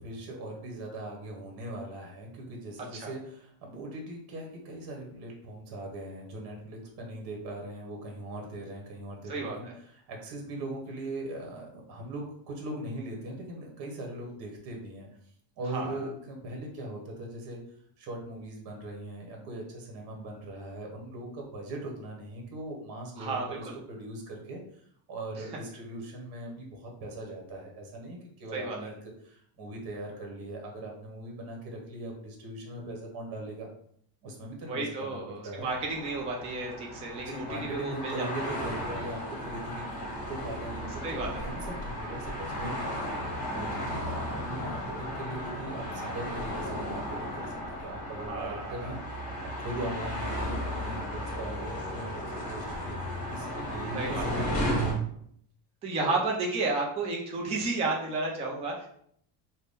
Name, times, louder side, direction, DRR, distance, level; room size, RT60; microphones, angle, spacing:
voice 1, 0.0-15.1 15.6-17.6 18.0-33.7 34.2-35.7 37.1-54.9 56.0-56.2, right 1 dB, 50° right, 1 dB, 1.0 m, -40 dB
voice 2, 9.3-9.7 15.7-16.0 23.2-23.7 28.5-28.9 34.7-38.5 41.0-41.4 48.2-48.9 53.9-54.2 55.8-58.9, right 3 dB, 15° right, -1 dB, 0.3 m, -32 dB
sound 1, 35.6-54.9, equal, 30° left, 1.3 m, -35 dB
3.5 x 2.1 x 3.9 m, 0.66 s
cardioid pair, 155°, 45 cm